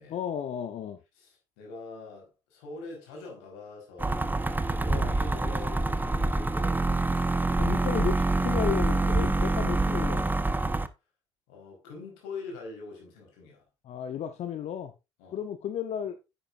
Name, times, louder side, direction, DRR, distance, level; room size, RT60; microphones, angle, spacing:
voice 1, 0.1-1.0 4.9-5.2 7.6-10.4 13.8-14.9 15.3-16.2, left 9 dB, 55° left, 1.1 m, -33 dB
voice 2, 1.2-7.1 11.5-13.6 15.2-15.4, left 3 dB, 70° left, 4.7 m, -44 dB
sound 1, 4.0-10.9, right 2 dB, 15° right, 1.0 m, -26 dB
10.5 x 8.7 x 2.6 m
figure-of-eight pair, 50°, 14 cm